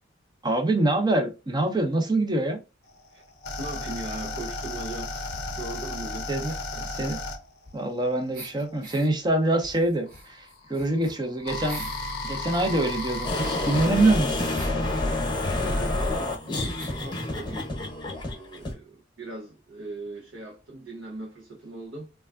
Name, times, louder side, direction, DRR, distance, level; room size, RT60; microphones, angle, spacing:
voice 1, 0.4-2.6 6.3-6.5 6.8-7.2 7.7-11.9 12.2-14.5, right 2 dB, 20° right, 0.6 m, -25 dB
sound 1, 2.9-9.1 10.1-13.9, left 2 dB, 55° left, 0.6 m, -34 dB
voice 2, 3.6-6.3 6.7-6.9 15.6-17.7 18.3-22.1, right 2 dB, 75° right, 0.6 m, -39 dB
sound 2, 5.1-6.0 6.4-8.0 8.3-9.1 9.6-12.1 12.5-14.8 15.7-15.8 16.0-16.1 16.8-17.1, right 1 dB, 50° right, 1.1 m, -46 dB
sound 3, 13.2-18.7, left 2 dB, 25° left, 0.8 m, -28 dB
3.4 x 2.3 x 2.3 m
head